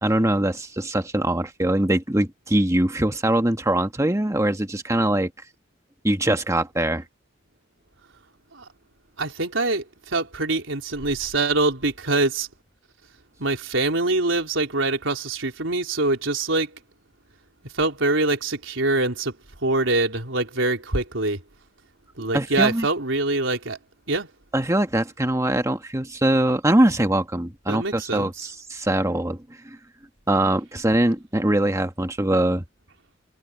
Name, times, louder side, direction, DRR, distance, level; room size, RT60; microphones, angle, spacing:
voice 1, 0.0-5.3 6.0-7.0 22.3-22.9 24.5-29.4 30.3-32.6, right 1 dB, 15° right, 1.4 m, -22 dB
voice 2, 9.2-9.8 10.1-12.5 13.4-16.7 17.7-19.3 19.6-21.4 22.2-23.8 24.1-24.3 27.7-28.5, right 2 dB, 85° right, 4.0 m, -24 dB
head